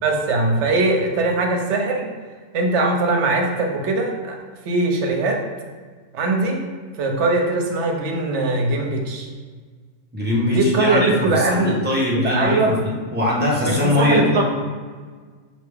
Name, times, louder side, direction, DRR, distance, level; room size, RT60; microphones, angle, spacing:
voice 1, 0.0-2.1 2.5-4.4 4.6-5.5 6.1-6.6 7.0-9.3 10.5-11.8 12.1-12.8 13.6-14.4, right 2 dB, 70° right, 2 dB, 0.9 m, -21 dB
voice 2, 10.1-14.4, left 1 dB, 10° right, -4 dB, 0.6 m, -21 dB
4.4 x 2.9 x 3.4 m, 1.5 s
omnidirectional pair, 1.3 m